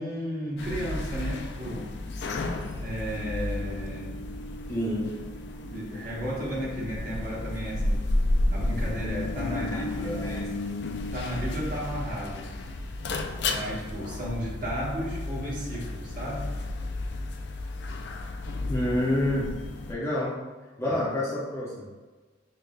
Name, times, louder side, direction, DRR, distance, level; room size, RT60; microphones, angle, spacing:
voice 1, 0.0-1.9 2.8-4.1 5.6-8.1 8.5-10.3 11.1-12.5 13.5-16.5 20.8-21.1, equal, 45° right, -6 dB, 1.2 m, -34 dB
sound 1, 0.6-19.9, left 2 dB, 60° left, 0.3 m, -32 dB
voice 2, 4.7-5.1 9.5-10.4 18.7-19.5 19.9-20.4 20.8-21.9, left 1 dB, 15° left, -6 dB, 0.6 m, -28 dB
6.2 x 2.2 x 2.2 m, 1.3 s
head